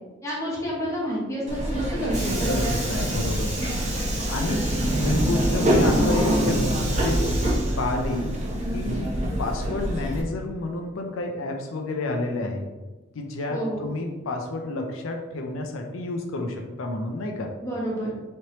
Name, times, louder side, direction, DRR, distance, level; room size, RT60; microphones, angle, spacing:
voice 1, 0.2-2.6 13.5-13.9 17.6-18.1, equal, 15° left, -5 dB, 1.1 m, -29 dB
Subway metro underground, 1.5-10.2, right 1 dB, 35° right, 0.9 m, -24 dB
voice 2, 2.5-3.5 4.3-4.7 5.0-7.3 7.8-8.3 8.7-9.0 9.4-12.6 13.1-17.5, left 2 dB, 75° left, 3 dB, 0.5 m, -30 dB
4.3 x 3.1 x 2.9 m, 1.2 s
head